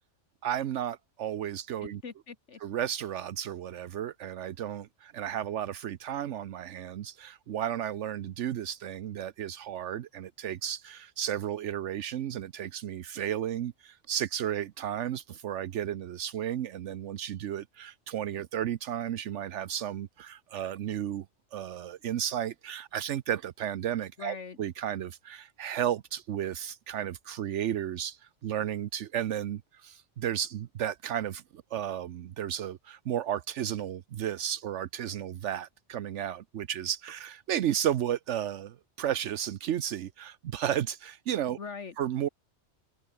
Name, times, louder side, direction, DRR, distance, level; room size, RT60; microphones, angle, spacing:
voice 1, 0.4-2.0 2.6-21.3 21.5-41.6 42.0-42.3, right 10 dB, 80° right, 1.0 m, -33 dB
voice 2, 1.8-2.6 24.2-24.6 41.6-42.0, left 5 dB, 75° left, 2.0 m, -41 dB
omnidirectional pair, 1.2 m